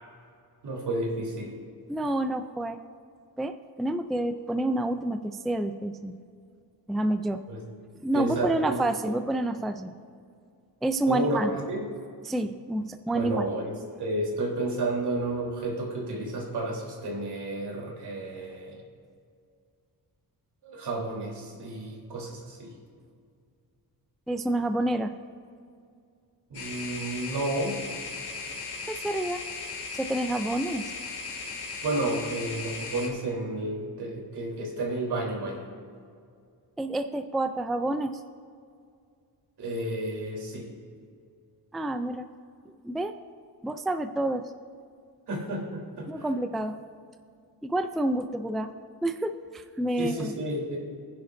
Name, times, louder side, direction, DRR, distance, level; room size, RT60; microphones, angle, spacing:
voice 1, 0.6-1.5 7.5-7.6 8.1-9.1 11.1-11.9 13.1-18.8 20.6-22.7 26.5-27.8 31.8-35.7 39.6-40.7 45.3-46.3 50.0-50.8, right 1 dB, 80° right, -2 dB, 3.5 m, -31 dB
voice 2, 1.9-2.8 3.4-6.2 6.9-7.4 8.0-9.9 10.8-11.5 12.2-13.5 24.3-25.1 28.9-29.4 29.9-30.9 36.8-38.2 41.7-42.3 42.7-43.1 43.6-44.5 46.1-46.8 47.6-48.7 49.0-50.3, right 1 dB, ahead, 8 dB, 0.3 m, -28 dB
sound 1, 26.5-33.1, left 4 dB, 80° left, 2.6 m, -37 dB
23.5 x 10.5 x 2.6 m, 2.3 s
wide cardioid pair, 160°, 39 cm